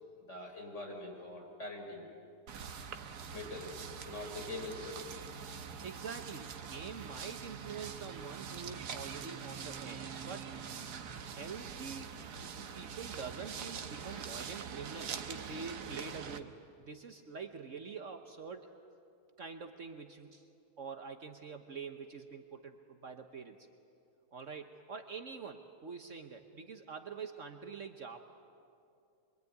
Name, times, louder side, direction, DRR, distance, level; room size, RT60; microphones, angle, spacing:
voice 1, 0.3-2.0 3.3-3.8 4.0-5.1, left 2 dB, 45° left, 1 dB, 4.8 m, -43 dB
sound 1, 2.5-16.4, right 7 dB, 75° right, 1.6 m, -44 dB
voice 2, 5.8-10.7 11.1-12.3 12.7-18.7 19.4-20.5 20.8-23.6 24.3-28.2, right 5 dB, 50° right, 6 dB, 1.3 m, -46 dB
26.0 x 23.5 x 9.5 m, 2.5 s
omnidirectional pair, 1.8 m